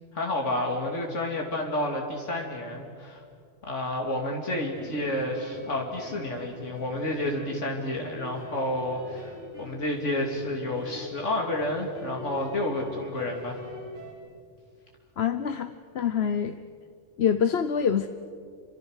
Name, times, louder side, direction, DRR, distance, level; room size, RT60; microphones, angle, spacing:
voice 1, 0.1-3.2 3.6-13.6, left 1 dB, 90° left, 1 dB, 2.8 m, -30 dB
sound 1, 4.7-14.1, equal, 85° right, 6.7 m, -45 dB
voice 2, 15.2-16.6 17.2-18.1, left 7 dB, 65° left, 10 dB, 1.1 m, -25 dB
29.0 x 25.0 x 6.4 m, 2.2 s
omnidirectional pair, 1.2 m